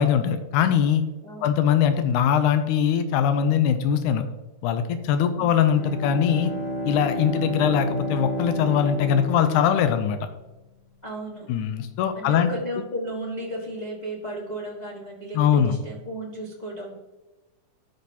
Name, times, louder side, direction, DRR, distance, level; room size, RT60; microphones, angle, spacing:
voice 1, 0.0-1.1 1.4-4.2 4.6-6.5 6.9-10.2 11.5-12.5 15.4-15.8, left 8 dB, 90° left, 8 dB, 2.1 m, -21 dB
voice 2, 1.2-1.7 5.3-5.5 11.0-11.5 12.1-16.9, right 1 dB, 40° left, -4 dB, 0.5 m, -34 dB
Bowed string instrument, 5.6-10.3, equal, 60° left, 2.5 m, -31 dB
14.0 x 5.4 x 2.8 m, 1.1 s
omnidirectional pair, 3.5 m